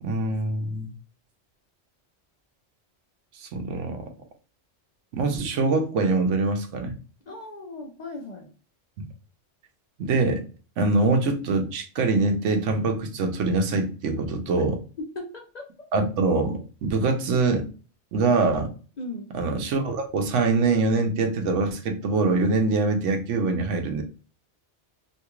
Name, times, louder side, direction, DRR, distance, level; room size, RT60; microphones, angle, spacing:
voice 1, 0.0-0.9 3.4-4.0 5.1-7.0 9.0-9.1 10.0-10.4 10.8-14.8 15.9-17.7 18.1-18.7 19.3-24.0, right 3 dB, 85° right, 5 dB, 1.0 m, -24 dB
voice 2, 7.3-8.5 15.0-15.7 19.0-19.3, left 2 dB, 50° left, 1 dB, 0.6 m, -37 dB
2.8 x 2.3 x 2.9 m, 0.36 s
omnidirectional pair, 1.2 m